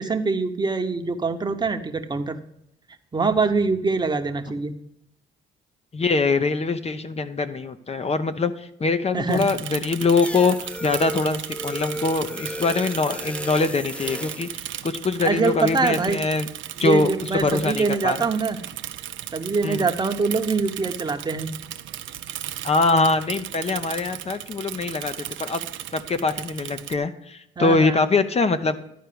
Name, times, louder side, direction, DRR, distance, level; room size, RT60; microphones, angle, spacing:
voice 1, 0.0-2.4 3.1-4.7 9.1-9.5 15.2-16.2 16.8-18.6 19.3-21.5 27.6-28.0, right 4 dB, 20° right, 5 dB, 1.0 m, -24 dB
voice 2, 5.9-16.5 16.8-18.2 19.6-19.9 22.6-25.6 25.9-28.8, left 3 dB, 30° left, 10 dB, 0.7 m, -23 dB
Bicycle / Mechanisms, 9.3-27.0, right 12 dB, 70° right, 0.6 m, -36 dB
sound 1, 10.2-14.6, equal, 5° left, 0.4 m, -34 dB
11.0 x 4.5 x 6.8 m, 0.78 s
cardioid pair, 90°, 20 cm